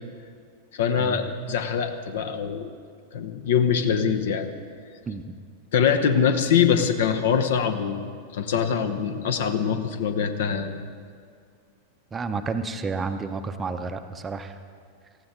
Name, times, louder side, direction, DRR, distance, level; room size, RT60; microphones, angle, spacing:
voice 1, 0.7-2.7 3.1-4.5 5.7-10.8, left 7 dB, 60° left, 8 dB, 0.9 m, -23 dB
voice 2, 12.1-14.6, right 4 dB, 20° right, 9 dB, 0.7 m, -30 dB
18.5 x 14.5 x 3.7 m, 2.2 s
figure-of-eight pair, 90°, 0 cm